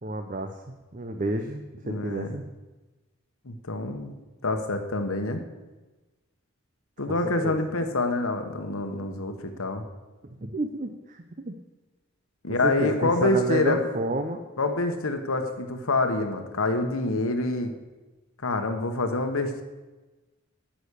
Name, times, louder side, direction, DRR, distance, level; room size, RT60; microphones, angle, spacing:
voice 1, 0.0-0.5 0.9-2.4 7.1-7.2 7.4-7.6 10.4-11.5 12.6-14.4, right 2 dB, 35° right, 6 dB, 0.6 m, -30 dB
voice 2, 1.8-2.4 3.4-4.1 4.4-5.4 7.0-9.8 12.4-13.8 14.6-17.7 18.4-19.6, left 2 dB, 80° left, 6 dB, 1.2 m, -26 dB
10.0 x 6.2 x 8.3 m, 1.2 s
head